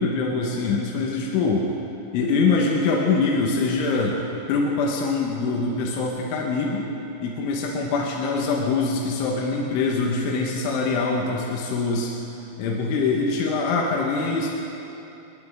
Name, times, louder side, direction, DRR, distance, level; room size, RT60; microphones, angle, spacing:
voice 1, 0.0-1.7 2.1-4.1 4.5-6.9 7.2-12.1 12.6-14.5, left 4 dB, 85° left, -2 dB, 3.7 m, -23 dB
29.5 x 10.5 x 3.6 m, 3.0 s
omnidirectional pair, 5.4 m